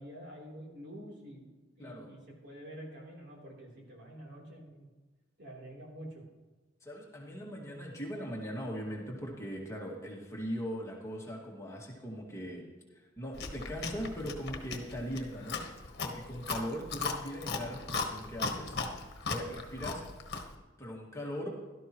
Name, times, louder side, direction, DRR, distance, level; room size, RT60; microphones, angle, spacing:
voice 1, 0.0-1.4 1.8-4.9 5.4-6.2, equal, 60° right, -2 dB, 3.5 m, -47 dB
voice 2, 1.8-2.1 6.8-12.6 12.9-15.6 16.0-18.8 19.3-20.0 20.8-21.5, equal, 15° left, -2 dB, 2.0 m, -40 dB
Chewing mastication, 13.3-20.6, left 4 dB, 55° left, 1.4 m, -38 dB
16.5 x 12.5 x 3.1 m, 1.2 s
head